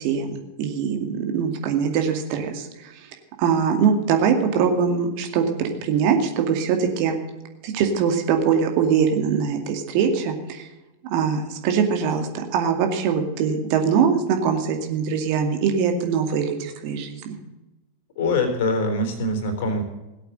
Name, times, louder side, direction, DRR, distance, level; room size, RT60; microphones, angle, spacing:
voice 1, 0.0-3.1 3.4-7.2 7.6-10.7 11.1-17.4, right 6 dB, 45° right, 4 dB, 2.3 m, -22 dB
voice 2, 18.2-19.8, left 2 dB, 50° left, 5 dB, 3.7 m, -23 dB
17.5 x 8.3 x 7.9 m, 1.0 s
figure-of-eight pair, 90°, 0 cm